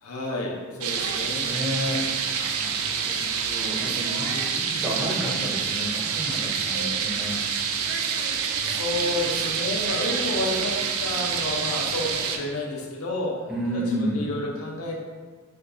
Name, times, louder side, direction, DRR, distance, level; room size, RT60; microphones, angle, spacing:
voice 1, 0.0-1.5 8.6-10.7 11.0-13.3 13.7-14.9, left 2 dB, 75° left, -2 dB, 0.6 m, -30 dB
sound 1, 0.8-12.4, right 6 dB, 70° right, 0.3 m, -27 dB
voice 2, 1.4-2.0 2.4-3.2 3.5-7.4 13.5-14.2, equal, ahead, -5 dB, 0.5 m, -31 dB
2.6 x 2.3 x 3.6 m, 1.4 s
head